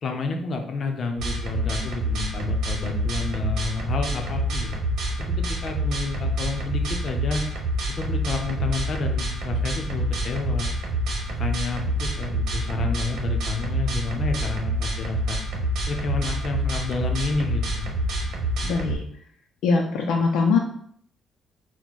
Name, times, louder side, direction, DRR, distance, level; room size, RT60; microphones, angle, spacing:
voice 1, 0.0-4.8 5.2-7.4 8.0-10.7 11.3-15.4 15.9-17.9, left 4 dB, 40° left, 4 dB, 0.6 m, -30 dB
sound 1, 1.2-19.0, right 1 dB, 70° right, 1.0 m, -27 dB
voice 2, 18.6-19.0 19.6-20.6, left 4 dB, 90° left, 0 dB, 0.5 m, -22 dB
4.1 x 2.1 x 4.5 m, 0.64 s
cardioid pair, 165°, 0 cm